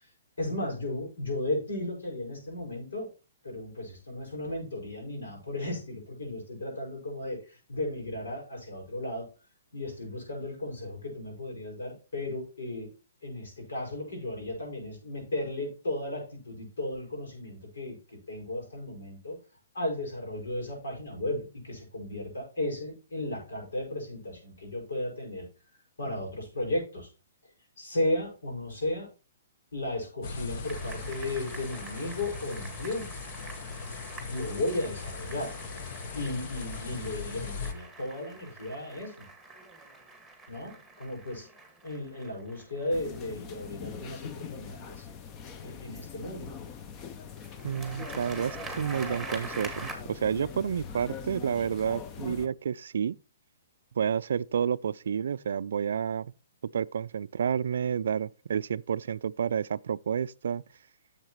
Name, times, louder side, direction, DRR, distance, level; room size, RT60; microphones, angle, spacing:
voice 1, 0.4-3.1 3.4-9.3 9.7-12.9 13.2-18.0 18.3-19.4 19.7-25.5 26.0-27.1 27.8-29.1 29.7-33.2 34.3-35.6 36.2-39.3 40.5-41.5 41.8-45.0 45.6-46.5, left 1 dB, 85° left, 5.7 m, -35 dB
sound 1, 30.2-37.7, left 4 dB, 50° left, 1.2 m, -39 dB
sound 2, 30.6-44.7 47.4-50.0, right 3 dB, ahead, 1.9 m, -45 dB
sound 3, 42.9-52.5, left 7 dB, 25° left, 0.7 m, -42 dB
voice 2, 47.6-53.2 54.0-56.3 56.7-60.6, right 7 dB, 70° right, 0.3 m, -30 dB
10.5 x 7.2 x 3.1 m
hypercardioid pair, 145°, 0 cm